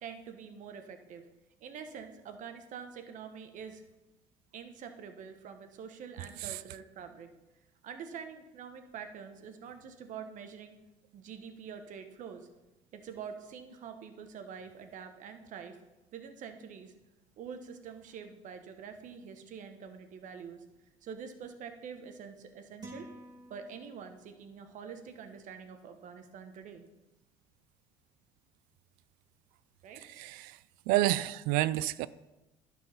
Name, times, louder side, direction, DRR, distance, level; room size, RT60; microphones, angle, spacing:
voice 1, 0.0-1.2 1.6-3.8 4.5-7.3 7.8-10.8 11.1-12.5 12.9-15.8 16.1-16.9 17.4-20.6 21.0-23.1 23.5-26.8 29.8-30.1, right 6 dB, 60° right, 1.2 m, -46 dB
sound 1, 22.8-24.3, right 2 dB, 25° right, 1.8 m, -49 dB
voice 2, 30.0-30.6 30.9-32.1, right 16 dB, 80° right, 0.4 m, -29 dB
11.0 x 4.7 x 5.7 m
supercardioid pair, 90°, 15 cm